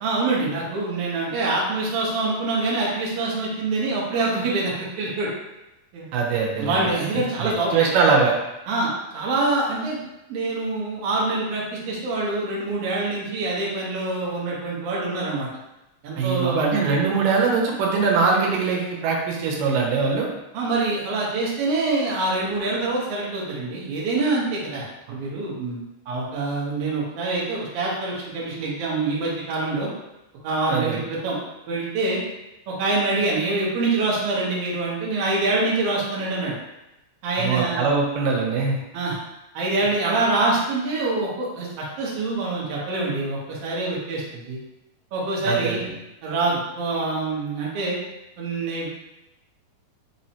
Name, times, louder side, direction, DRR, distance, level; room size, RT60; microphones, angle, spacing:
voice 1, 0.0-5.3 5.9-6.1 6.6-7.8 8.7-10.0 10.3-15.5 16.0-16.8 20.5-29.9 30.4-31.4 31.7-32.2 32.7-36.5 37.2-37.8 38.9-39.2 39.5-44.6 45.1-45.8 46.2-48.0 48.4-48.9, right 2 dB, 65° right, -5 dB, 1.5 m, -25 dB
voice 2, 6.1-6.9 7.4-8.3 16.2-20.3 30.7-31.0 37.4-38.8 45.4-45.9, right 5 dB, 85° right, -1 dB, 2.3 m, -22 dB
5.3 x 2.1 x 2.8 m, 0.93 s
omnidirectional pair, 3.8 m